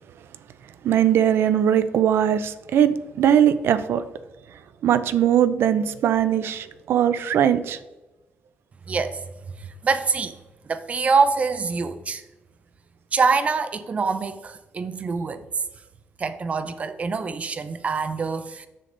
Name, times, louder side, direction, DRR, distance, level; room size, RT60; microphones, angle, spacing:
voice 1, 0.8-4.0 4.8-7.8, right 9 dB, 75° right, 0.6 m, -20 dB
voice 2, 8.9-9.2 9.6-10.4 10.7-12.2 13.1-15.5 16.2-18.7, right 4 dB, 35° right, 0.6 m, -25 dB
10.0 x 6.9 x 3.9 m
cardioid pair, 135°, 4 cm